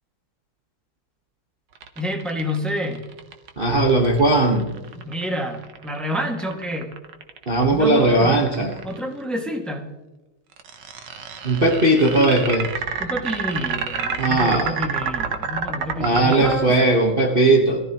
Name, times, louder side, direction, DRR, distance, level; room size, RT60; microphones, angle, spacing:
sound 1, 1.8-9.0 10.6-16.6, right 6 dB, 60° right, 1.7 m, -29 dB
voice 1, 1.9-3.0 4.9-6.9 7.7-8.4 8.8-9.9 13.0-17.0, equal, ahead, 1 dB, 1.7 m, -28 dB
voice 2, 3.6-4.7 7.5-8.8 11.4-12.7 14.2-14.8 16.0-17.8, right 2 dB, 30° right, -1 dB, 1.4 m, -18 dB
21.5 x 14.5 x 3.0 m, 1.1 s
omnidirectional pair, 2.4 m